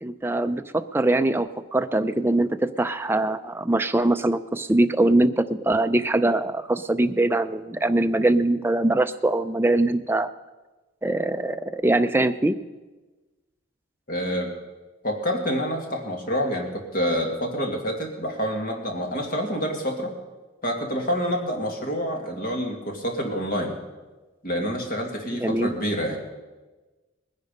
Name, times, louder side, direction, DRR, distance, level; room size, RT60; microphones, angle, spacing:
voice 1, 0.0-10.3 11.0-12.5 25.4-25.7, right 2 dB, 10° right, 8 dB, 0.4 m, -22 dB
voice 2, 14.1-14.5 15.0-20.1 20.6-23.8 24.4-26.2, equal, 45° left, 2 dB, 2.1 m, -27 dB
20.0 x 10.5 x 5.3 m, 1.2 s
head